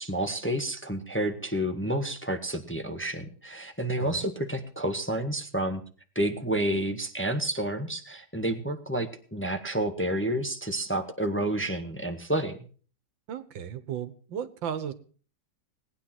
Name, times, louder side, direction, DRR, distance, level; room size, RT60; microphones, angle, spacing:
voice 1, 0.0-5.8 6.1-12.6, right 1 dB, 5° left, 5 dB, 1.4 m, -30 dB
voice 2, 4.0-4.3 13.3-14.9, right 8 dB, 85° right, 13 dB, 1.9 m, -35 dB
19.0 x 9.7 x 6.0 m, 0.41 s
omnidirectional pair, 2.0 m